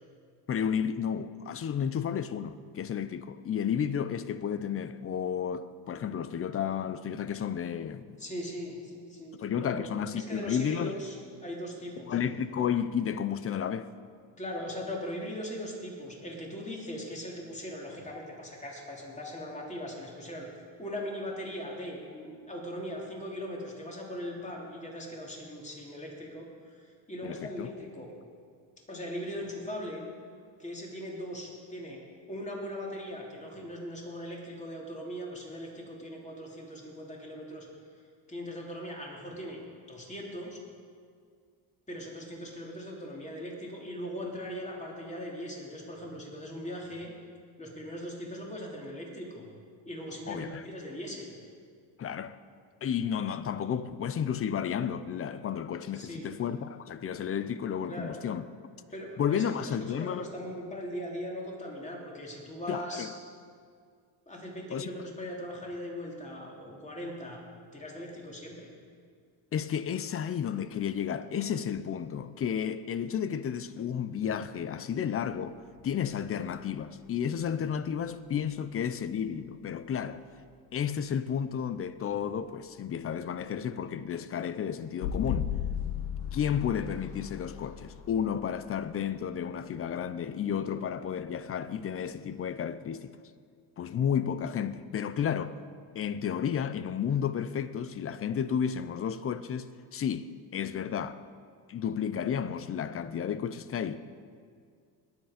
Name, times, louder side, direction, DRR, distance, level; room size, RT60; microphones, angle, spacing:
voice 1, 0.5-8.2 9.4-10.9 12.1-13.9 27.2-27.7 50.3-50.6 52.0-52.4 52.8-58.5 59.2-60.3 62.7-63.1 64.7-64.9 69.5-75.6 75.8-80.2 80.7-85.5 86.3-93.2 93.8-95.5 95.9-101.2 101.7-104.1, left 8 dB, 35° left, 0.6 m, -32 dB
voice 2, 8.2-11.2 11.4-12.2 14.4-28.1 28.9-30.0 30.6-32.0 32.3-37.7 38.3-39.6 39.9-40.6 41.9-47.1 47.6-49.5 49.9-51.3 55.9-56.3 57.9-58.2 58.9-59.7 60.0-63.1 64.3-67.4 67.7-68.7, equal, 15° left, 3.0 m, -40 dB
sound 1, 75.8-76.7 78.4-78.5 85.0-89.7, left 8 dB, 70° left, 1.2 m, -36 dB
21.0 x 8.0 x 5.1 m
cardioid pair, 110°, 42 cm